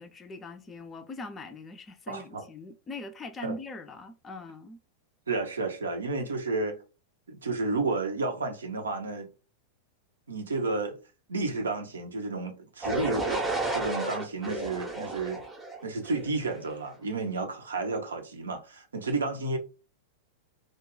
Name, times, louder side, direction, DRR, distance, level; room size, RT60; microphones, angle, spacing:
voice 1, 0.0-4.8, left 2 dB, 20° left, 0.4 m, -41 dB
voice 2, 2.1-2.4 3.4-3.5 5.3-6.8 7.3-9.3 10.3-11.0 11.3-13.5 13.7-15.4 15.8-19.6, right 3 dB, 70° right, 0.7 m, -31 dB
sound 1, 12.8-16.7, right 2 dB, 10° right, 0.7 m, -32 dB
2.3 x 2.2 x 3.7 m
figure-of-eight pair, 95°, 0 cm